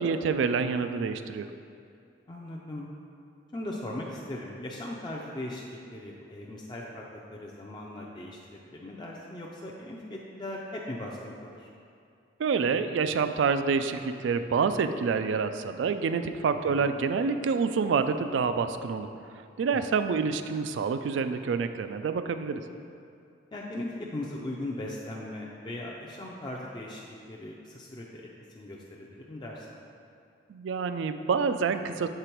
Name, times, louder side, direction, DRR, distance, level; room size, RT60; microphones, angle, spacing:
voice 1, 0.0-1.5 12.4-19.1 19.6-22.6 30.5-32.1, right 5 dB, 80° right, 10 dB, 0.3 m, -27 dB
voice 2, 2.3-2.9 3.5-11.7 16.6-16.9 19.7-19.9 23.5-28.3 28.5-29.8, left 1 dB, 25° left, -3 dB, 0.4 m, -39 dB
6.7 x 3.8 x 4.5 m, 2.5 s
head